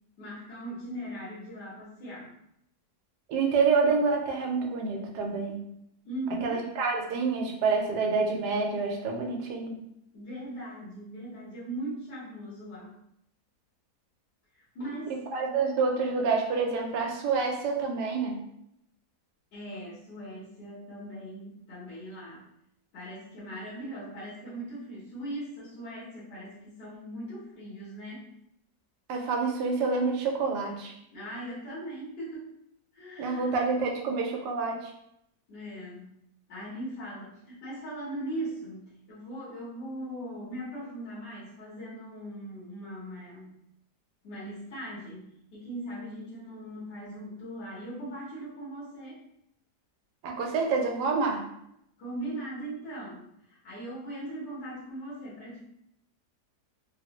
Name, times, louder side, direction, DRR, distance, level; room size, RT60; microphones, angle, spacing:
voice 1, 0.2-2.3 6.0-6.6 10.1-13.0 14.5-15.2 19.5-22.4 22.9-28.3 31.1-32.5 32.9-33.6 35.5-36.1 36.5-43.5 44.2-49.2 52.0-55.6, right 1 dB, 85° left, -8 dB, 1.6 m, -39 dB
voice 2, 3.3-5.6 6.4-9.8 15.3-18.4 29.1-30.9 33.2-34.9 50.2-51.5, right 4 dB, 85° right, 1 dB, 1.2 m, -27 dB
3.6 x 2.0 x 2.9 m, 0.77 s
omnidirectional pair, 1.7 m